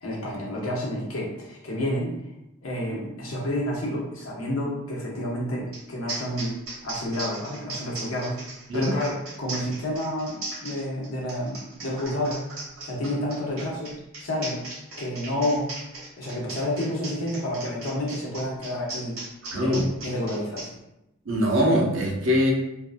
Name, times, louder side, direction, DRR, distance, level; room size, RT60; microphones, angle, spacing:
voice 1, 0.0-2.1 2.6-6.6 6.8-8.4 8.7-12.4 12.8-13.9 14.2-14.6 15.0-15.7 16.2-19.2 19.5-20.7, left 1 dB, 70° left, -3 dB, 0.8 m, -29 dB
sound 1, 5.7-5.8 6.1-20.7, right 3 dB, 75° right, 1.1 m, -37 dB
voice 2, 19.5-19.9 21.3-22.5, equal, 60° right, -2 dB, 0.6 m, -22 dB
2.7 x 2.4 x 2.4 m, 0.87 s
head